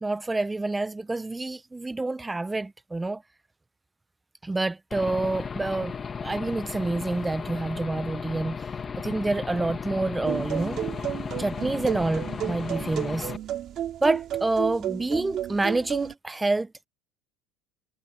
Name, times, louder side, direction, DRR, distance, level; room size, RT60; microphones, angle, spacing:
voice 1, 0.0-3.2 4.4-5.9 6.2-8.7 9.0-10.8 11.4-13.3 14.0-16.9, right 2 dB, 10° right, 0.4 m, -28 dB
Aircraft / Engine, 4.9-13.4, left 6 dB, 25° left, 1.3 m, -35 dB
sound 1, 10.2-16.1, right 11 dB, 45° right, 2.2 m, -33 dB
cardioid pair, 130°, 0 cm